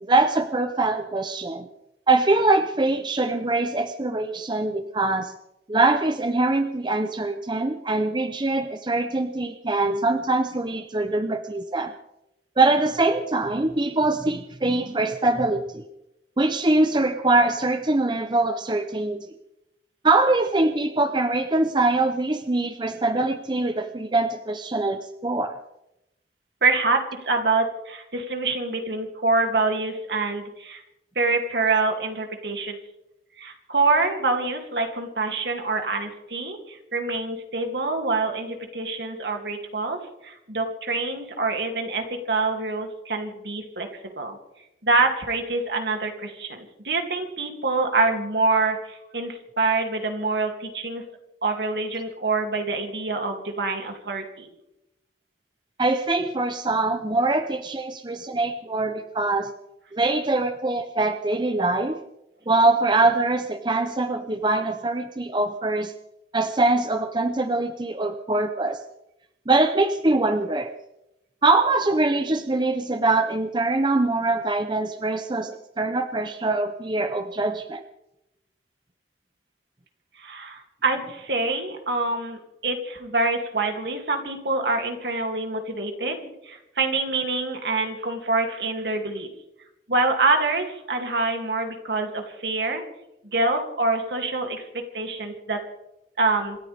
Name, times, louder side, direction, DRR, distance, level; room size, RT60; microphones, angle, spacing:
voice 1, 0.0-1.7 2.1-5.3 5.7-11.9 12.6-15.9 16.4-19.3 20.0-25.6 55.8-59.5 59.9-62.0 62.5-65.9 66.3-68.8 69.5-70.7 71.4-77.8, right 2 dB, 25° right, 8 dB, 0.8 m, -23 dB
voice 2, 26.6-30.8 31.1-32.8 33.4-40.0 40.2-44.4 44.8-51.0 51.4-54.5 80.2-89.3 89.9-92.8 93.3-94.6 94.9-95.6 96.2-96.6, right 3 dB, 65° right, 3 dB, 2.8 m, -25 dB
27.0 x 13.5 x 3.6 m, 0.88 s
head